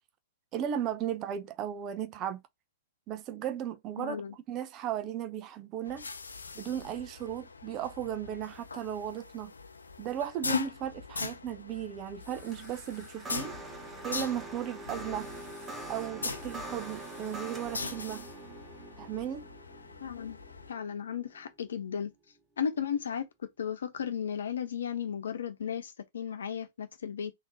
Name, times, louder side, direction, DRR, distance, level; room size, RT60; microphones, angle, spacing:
voice 1, 0.5-2.4 3.1-4.2 4.5-6.1 6.5-9.5 10.0-13.5 14.0-15.3 15.9-18.2 19.0-19.5, right 10 dB, 35° right, 0.6 m, -36 dB
voice 2, 4.0-4.4 20.0-20.4 20.7-22.1 22.6-27.3, left 7 dB, 75° left, 1.0 m, -35 dB
sound 1, 5.8-20.7, left 4 dB, 90° left, 0.6 m, -41 dB
sound 2, 12.3-21.7, right 2 dB, 15° right, 1.0 m, -44 dB
3.7 x 2.8 x 2.8 m
hypercardioid pair, 115°, 0 cm